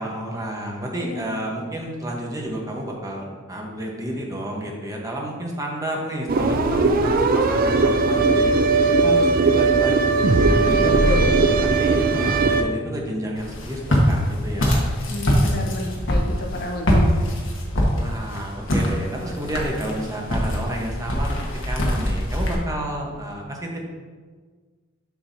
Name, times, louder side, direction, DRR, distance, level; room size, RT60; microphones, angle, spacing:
voice 1, 0.0-8.6 9.0-11.2 11.8-14.8 17.9-23.8, right 1 dB, 15° right, -1 dB, 1.0 m, -30 dB
sound 1, 6.3-12.6, right 3 dB, 45° right, 0.4 m, -18 dB
voice 2, 10.8-11.3 15.1-17.1, left 2 dB, 50° left, 1 dB, 0.9 m, -30 dB
Walk footsteps, 13.4-22.6, equal, 65° left, 1.2 m, -23 dB
7.2 x 6.2 x 2.7 m, 1.5 s
head